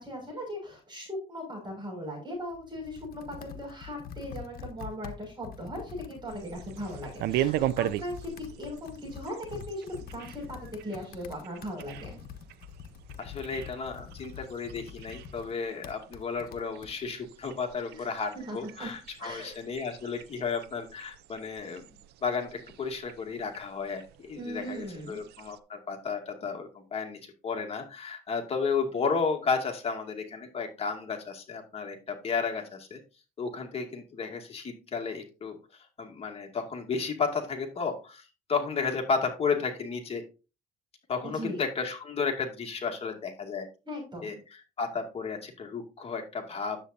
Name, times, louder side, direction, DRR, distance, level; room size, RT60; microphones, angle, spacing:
voice 1, 0.0-12.2 17.9-18.9 19.2-19.6 24.4-25.2 41.2-41.6 43.8-44.3, equal, 25° right, -1 dB, 5.8 m, -39 dB
Computer keyboard, 2.3-17.0, left 8 dB, 60° left, 1.1 m, -46 dB
sound 1, 6.3-25.6, right 13 dB, 80° right, 0.5 m, -39 dB
voice 2, 13.2-21.9 22.2-33.0 33.4-35.6 36.0-40.2 41.1-43.7 44.2-46.8, left 5 dB, 35° left, 3 dB, 2.2 m, -33 dB
9.9 x 7.8 x 2.7 m, 0.31 s
cardioid pair, 110°, 17 cm